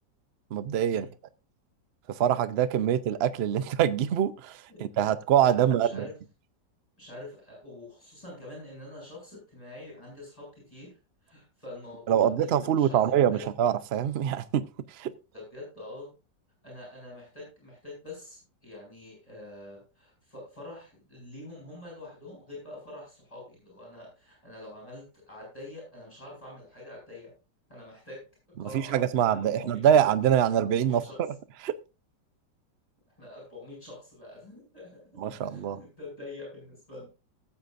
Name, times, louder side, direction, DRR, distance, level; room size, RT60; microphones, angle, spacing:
voice 1, 0.5-1.1 2.1-6.1 12.1-14.6 14.9-15.1 28.6-31.3 31.6-31.7 35.2-35.8, right 9 dB, 60° right, 0.6 m, -24 dB
voice 2, 4.7-6.1 7.0-10.9 11.2-13.5 15.3-16.1 16.6-27.3 27.7-28.2 28.6-30.0 30.4-31.2 33.2-37.1, left 2 dB, 20° left, 7.2 m, -45 dB
17.5 x 8.4 x 2.6 m
omnidirectional pair, 1.9 m